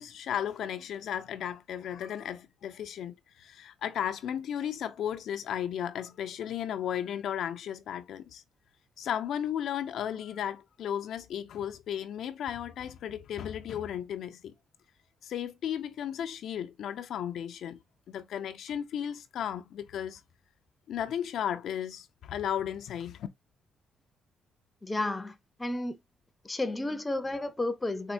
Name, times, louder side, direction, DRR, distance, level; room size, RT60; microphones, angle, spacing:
voice 1, 0.0-8.4 9.0-14.5 15.2-17.8 18.1-20.2 20.9-23.3, left 9 dB, 70° left, 0.4 m, -35 dB
voice 2, 24.8-26.0 26.4-28.1, left 2 dB, 20° left, 0.5 m, -32 dB
4.3 x 2.1 x 2.5 m
cardioid pair, 90°, 0 cm